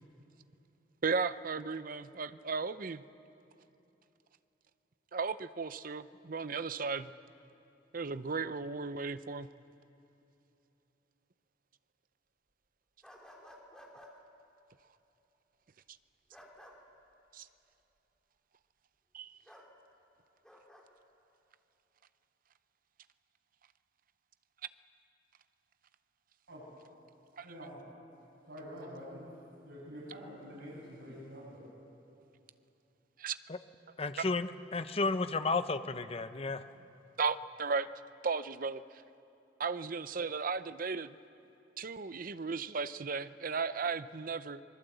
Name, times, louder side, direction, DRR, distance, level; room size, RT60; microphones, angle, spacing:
voice 1, 1.0-3.0 5.1-7.1 7.9-9.5 17.3-17.5 19.1-19.4 27.4-27.5 33.2-33.4 34.2-34.3 37.2-37.9 38.2-38.8 39.6-41.2 41.8-44.6, right 5 dB, 45° right, 14 dB, 0.6 m, -35 dB
sound 1, 13.0-14.1 16.3-16.8 19.5-19.7 20.4-20.8, equal, 5° left, 2.6 m, -54 dB
voice 2, 27.4-27.9 28.5-29.3 29.6-31.6, equal, 90° right, -7 dB, 7.4 m, -47 dB
voice 3, 34.0-36.6, left 3 dB, 30° left, 11 dB, 0.8 m, -32 dB
25.0 x 21.5 x 8.1 m, 3.0 s
head